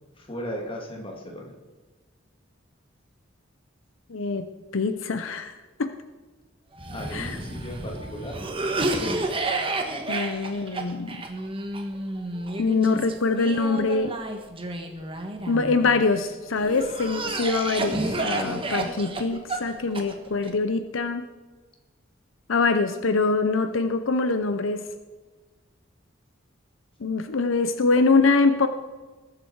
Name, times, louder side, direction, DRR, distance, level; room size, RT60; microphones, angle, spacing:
voice 1, 0.2-1.5 6.9-8.4 8.9-9.2, equal, 25° left, 1 dB, 2.4 m, -36 dB
voice 2, 4.1-4.4 4.7-5.5 5.8-5.9 7.1-7.4 10.1-11.2 12.6-14.2 15.5-21.2 22.5-24.8 27.0-28.7, left 3 dB, 75° left, 9 dB, 0.7 m, -24 dB
Cough, 6.8-16.0 16.6-20.5, right 2 dB, 25° right, 1.4 m, -31 dB
20.0 x 7.6 x 4.7 m, 1.3 s
head